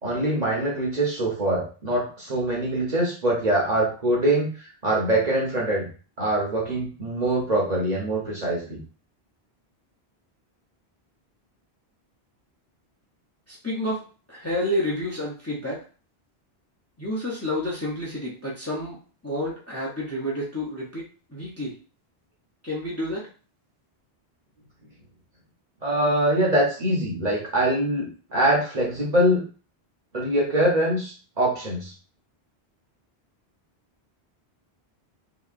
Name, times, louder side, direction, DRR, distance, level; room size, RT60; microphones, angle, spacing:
voice 1, 0.0-4.5 4.8-5.9 6.2-8.8 25.8-29.4 30.1-31.9, right 1 dB, 45° right, -3 dB, 0.9 m, -23 dB
voice 2, 13.5-14.0 14.3-15.8 17.0-19.0 19.2-21.0 21.3-21.7 22.6-23.3, left 1 dB, 15° left, -5 dB, 0.6 m, -29 dB
2.9 x 2.7 x 2.5 m, 0.38 s
omnidirectional pair, 1.1 m